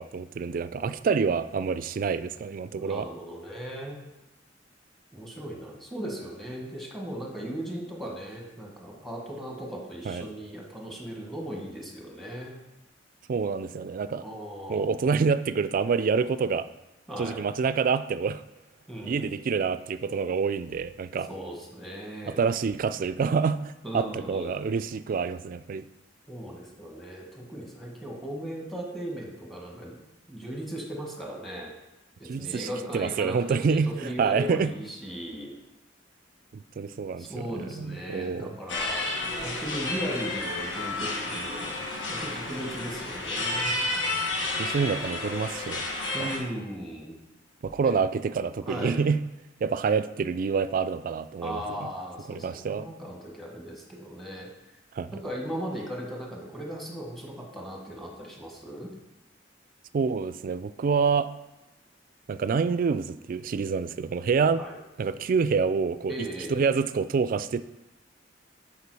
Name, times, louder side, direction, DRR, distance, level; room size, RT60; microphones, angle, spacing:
voice 1, 0.0-3.1 10.1-10.3 13.3-14.2 14.7-16.7 17.2-18.4 19.0-21.3 22.3-25.8 32.2-34.7 36.5-38.5 44.6-45.8 46.2-46.3 47.6-49.2 49.6-51.9 52.3-52.9 54.9-55.1 59.9-61.3 62.3-64.6 65.0-67.6, right 5 dB, 50° right, 13 dB, 0.3 m, -27 dB
voice 2, 2.8-4.0 5.1-12.6 14.2-15.0 17.1-17.4 18.9-19.3 21.3-22.3 23.8-24.6 26.3-29.9 30.3-31.7 32.2-35.5 37.2-39.1 39.4-41.8 42.1-43.7 46.1-47.1 47.8-47.9 48.7-49.0 51.4-54.5 55.1-58.9 64.5-64.8 66.1-66.5, equal, ahead, -1 dB, 1.4 m, -37 dB
sound 1, 38.7-46.4, left 2 dB, 80° left, 1.5 m, -31 dB
6.8 x 4.8 x 4.8 m, 0.96 s
head